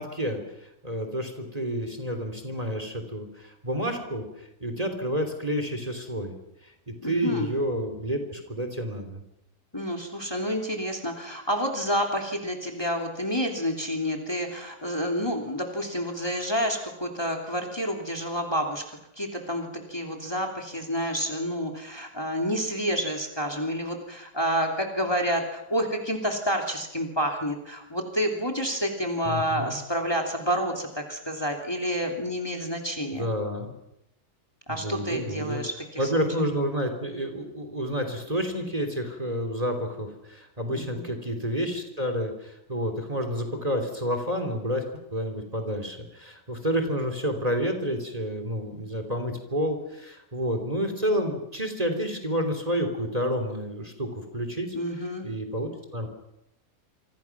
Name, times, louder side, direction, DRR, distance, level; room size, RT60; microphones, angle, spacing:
voice 1, 0.0-6.3 6.6-9.2 29.2-29.8 33.1-33.7 34.7-35.6 36.0-44.8 45.1-54.8 55.2-56.1, equal, 25° right, 6 dB, 3.2 m, -29 dB
voice 2, 7.0-7.5 9.7-33.3 34.7-36.1 40.7-41.1 54.7-55.3, equal, 15° left, 2 dB, 3.0 m, -29 dB
28.0 x 25.0 x 6.0 m, 0.85 s
omnidirectional pair, 1.6 m